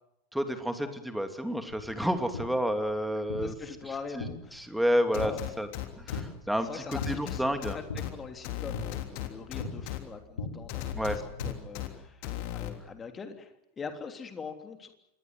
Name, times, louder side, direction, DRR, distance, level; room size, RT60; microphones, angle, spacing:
voice 1, 0.3-3.5 4.2-4.3 4.5-5.7 6.0-7.8 10.9-11.2, equal, ahead, 7 dB, 2.8 m, -30 dB
sound 1, 1.7-11.5, left 3 dB, 65° left, 5.6 m, -42 dB
voice 2, 3.4-4.7 5.2-5.5 6.6-12.3 12.5-14.9, left 5 dB, 20° left, 6 dB, 3.3 m, -43 dB
sound 2, 5.1-6.2 6.9-8.1 8.4-10.0 10.7-11.9 12.2-12.7, left 16 dB, 45° left, 3.3 m, -35 dB
27.0 x 21.0 x 7.8 m, 0.84 s
figure-of-eight pair, 90°, 0 cm